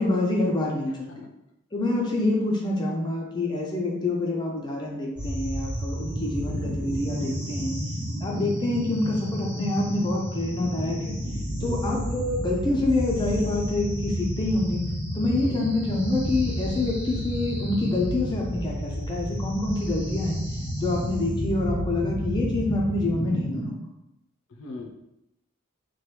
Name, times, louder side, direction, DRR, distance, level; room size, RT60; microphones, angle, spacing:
voice 1, 0.0-1.3 1.7-7.7 8.2-11.2 11.6-14.8 15.1-20.4 20.8-23.9, left 2 dB, 20° left, -1 dB, 0.4 m, -27 dB
voice 2, 0.9-1.3 11.6-11.9 15.4-15.7 24.5-24.9, left 2 dB, 80° left, 3 dB, 0.5 m, -40 dB
sound 1, 5.2-23.7, equal, 5° right, 0.9 m, -31 dB
3.0 x 2.2 x 3.2 m, 0.85 s
head